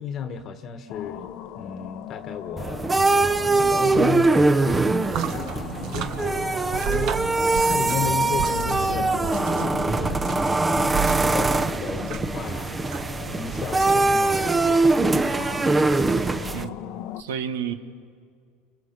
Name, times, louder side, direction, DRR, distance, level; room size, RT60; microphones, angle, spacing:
voice 1, 0.0-2.9 3.6-7.4 7.6-12.8 13.3-15.5 15.9-16.2, left 6 dB, 45° left, 9 dB, 1.4 m, -35 dB
sound 1, 0.9-17.2, left 12 dB, 60° left, 0.9 m, -38 dB
sound 2, 2.6-16.6, right 3 dB, 15° right, 0.9 m, -22 dB
sound 3, 5.0-16.7, right 8 dB, 55° right, 1.6 m, -35 dB
voice 2, 16.5-17.7, right 8 dB, 85° right, 7 dB, 1.8 m, -32 dB
28.5 x 24.5 x 6.8 m, 2.2 s
supercardioid pair, 100°, 0 cm